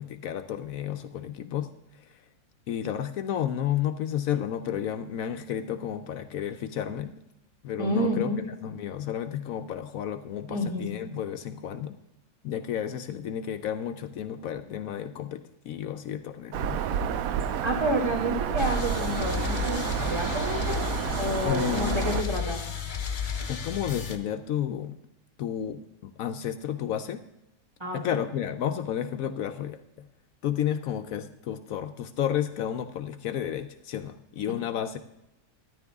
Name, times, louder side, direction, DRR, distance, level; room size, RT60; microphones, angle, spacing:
voice 1, 0.0-2.2 2.7-7.1 7.6-8.3 8.6-12.0 12.4-16.8 21.4-22.4 23.5-25.0 25.4-27.2 27.9-29.8 30.4-35.0, left 10 dB, 75° left, 9 dB, 1.0 m, -32 dB
voice 2, 7.8-8.4 10.5-10.9 17.6-20.8 21.2-22.6 27.8-28.0, equal, 20° right, 0 dB, 2.2 m, -29 dB
Bird vocalization bird call bird song, 16.5-22.2, right 8 dB, 75° right, 1.0 m, -30 dB
sound 1, 18.6-24.2, left 7 dB, 40° left, 0.9 m, -33 dB
13.0 x 10.5 x 3.6 m, 0.88 s
omnidirectional pair, 1.5 m